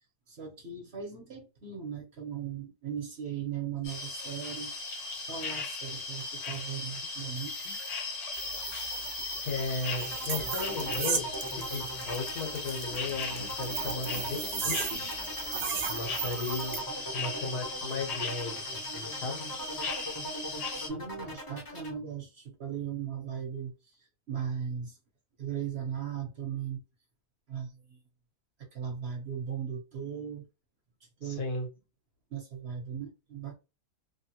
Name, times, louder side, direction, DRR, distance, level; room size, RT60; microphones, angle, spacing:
voice 1, 0.3-4.7 5.3-7.7 20.7-23.7 24.3-25.0 25.4-26.8 27.5-28.0 28.7-30.5 31.2-31.4 32.3-33.5, right 8 dB, 50° right, 1.0 m, -38 dB
sound 1, 3.8-20.9, left 3 dB, 75° left, 1.3 m, -37 dB
sound 2, 8.3-16.8, right 6 dB, 85° right, 0.4 m, -37 dB
voice 2, 9.4-11.3 11.7-14.4 14.7-15.3 15.5-16.8 17.1-19.4 31.2-31.7, left 3 dB, 90° left, 1.6 m, -36 dB
sound 3, 9.9-21.9, right 1 dB, 25° left, 0.5 m, -41 dB
3.2 x 2.4 x 2.8 m
omnidirectional pair, 1.6 m